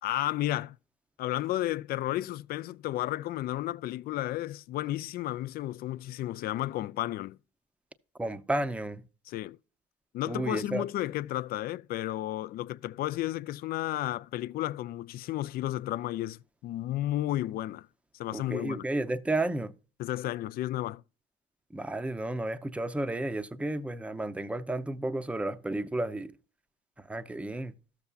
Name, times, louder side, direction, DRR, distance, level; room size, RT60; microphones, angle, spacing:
voice 1, 0.0-0.8 1.2-7.4 9.3-9.6 10.1-17.9 18.1-18.9 20.0-21.0, left 14 dB, 65° left, 0.4 m, -32 dB
voice 2, 8.2-9.0 10.3-10.8 18.3-19.7 21.7-26.3 27.1-27.7, right 2 dB, 5° right, 0.6 m, -32 dB
13.5 x 6.9 x 2.4 m
cardioid pair, 110°, 17 cm